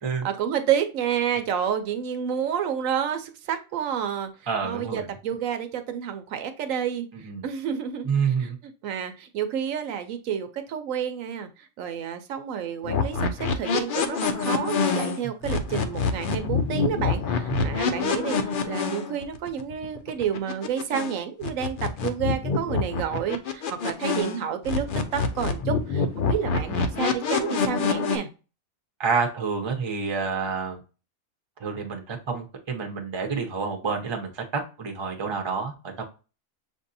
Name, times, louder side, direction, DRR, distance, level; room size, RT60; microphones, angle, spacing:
voice 1, 0.2-4.3 4.6-24.9 25.1-28.3, right 8 dB, 70° right, 1.0 m, -30 dB
voice 2, 4.5-5.1 7.1-7.4 8.1-8.6 17.5-17.8 29.0-30.8 31.6-36.0, right 5 dB, 30° right, 0.6 m, -28 dB
sound 1, 12.8-21.2 21.4-24.4 24.6-28.2, left 5 dB, 75° left, 0.4 m, -26 dB
6.6 x 2.6 x 2.6 m
omnidirectional pair, 1.5 m